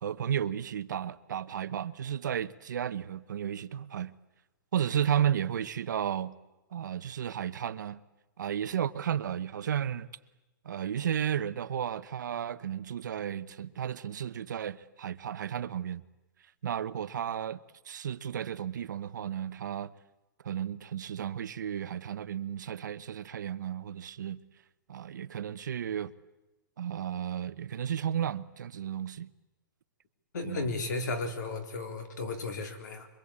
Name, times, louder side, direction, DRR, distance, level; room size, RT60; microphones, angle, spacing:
voice 1, 0.0-4.1 4.7-6.3 6.7-8.0 8.4-10.1 10.6-16.0 16.6-17.6 17.9-19.9 20.4-24.4 24.9-26.1 26.8-29.3 30.4-30.7, right 9 dB, 65° right, 0.9 m, -33 dB
voice 2, 30.3-33.1, left 3 dB, 60° left, 3.8 m, -34 dB
26.0 x 23.5 x 8.7 m
hypercardioid pair, 175°, 11 cm